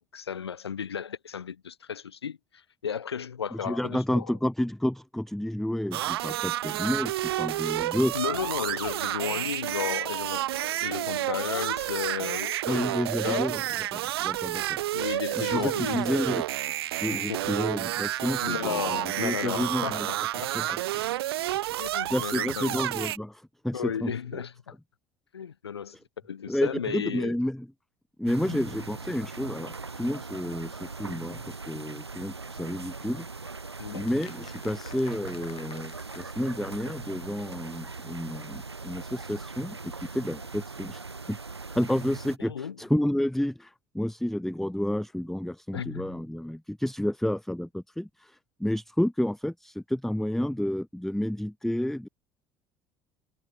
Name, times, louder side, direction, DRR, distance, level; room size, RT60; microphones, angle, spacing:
voice 1, 0.0-4.3 8.1-12.8 13.2-13.5 14.9-16.1 17.1-17.6 18.4-20.0 20.6-20.8 21.8-22.8 23.7-24.8 25.3-26.0 26.2-27.4 28.5-28.6 33.8-34.1 42.4-42.7 45.7-46.1, left 7 dB, 80° left, 1.6 m, -34 dB
voice 2, 3.6-8.1 12.7-13.6 13.9-14.8 15.4-16.6 17.0-20.1 20.5-20.8 22.1-24.4 26.5-27.7 28.2-33.3 33.9-41.0 41.3-41.4 41.7-52.1, left 1 dB, ahead, 0.8 m, -30 dB
sound 1, 5.9-23.2, right 15 dB, 70° right, 1.1 m, -30 dB
sound 2, 28.3-42.4, right 4 dB, 90° right, 0.6 m, -40 dB
sound 3, 33.5-37.2 37.4-37.5 37.7-37.8 38.0-38.1, left 12 dB, 45° left, 6.0 m, -52 dB
figure-of-eight pair, 60°, 13 cm